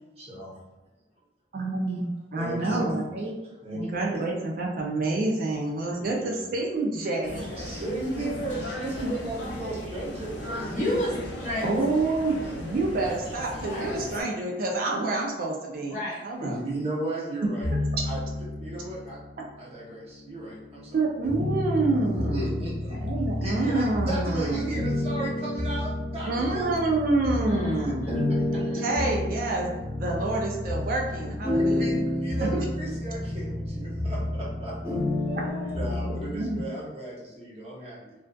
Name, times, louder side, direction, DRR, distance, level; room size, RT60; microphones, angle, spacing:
voice 1, 0.2-0.6 2.3-3.1 3.6-4.0 6.0-6.5 7.6-10.9 16.4-17.7 18.0-18.2 18.6-19.2 19.6-21.0 22.3-23.0 23.4-26.7 28.1-28.8 31.5-35.0 35.7-38.1, right 2 dB, 35° right, -6 dB, 0.7 m, -35 dB
voice 2, 1.5-3.3 3.7-7.5 11.6-16.6 20.9-22.7 22.9-24.7 26.3-28.1 28.5-31.8 36.0-36.6, right 2 dB, 50° right, 0 dB, 0.3 m, -28 dB
sound 1, 7.2-14.2, left 1 dB, 80° left, 0.5 m, -37 dB
voice 3, 10.7-11.8 13.6-13.9 15.8-16.2 27.4-28.1 28.4-29.0 35.3-36.0, left 1 dB, 45° left, -6 dB, 0.7 m, -32 dB
sound 2, 17.6-19.3 20.0-36.5, left 1 dB, 5° left, 0.8 m, -30 dB
2.5 x 2.2 x 2.2 m, 1.1 s
head